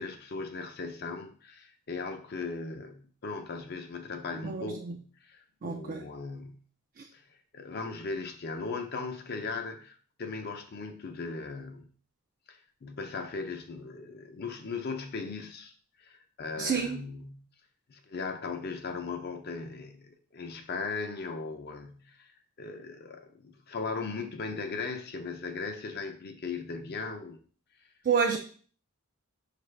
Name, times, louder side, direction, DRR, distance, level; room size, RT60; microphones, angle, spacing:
voice 1, 0.0-6.5 7.1-7.2 7.5-11.9 12.5-15.7 16.0-17.4 17.9-22.3 22.6-27.4, left 4 dB, 50° left, 5 dB, 0.5 m, -38 dB
voice 2, 4.4-4.9 5.6-6.1 7.0-7.1 16.6-17.0 28.0-28.4, right 6 dB, 40° right, 2 dB, 0.3 m, -29 dB
5.3 x 2.5 x 3.2 m, 0.43 s
head